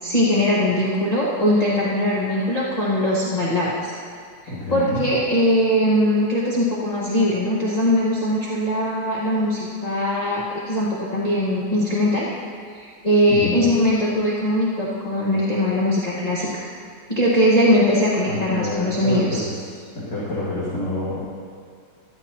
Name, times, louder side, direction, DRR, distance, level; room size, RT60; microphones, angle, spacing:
voice 1, 0.0-3.9 4.7-12.3 12.8-16.5 17.1-19.4, left 1 dB, 25° left, -7 dB, 1.5 m, -21 dB
voice 2, 4.5-5.0 13.3-13.7 18.2-19.5 19.9-21.2, left 1 dB, 65° left, -9 dB, 2.9 m, -27 dB
14.0 x 12.5 x 3.0 m, 2.2 s
omnidirectional pair, 2.0 m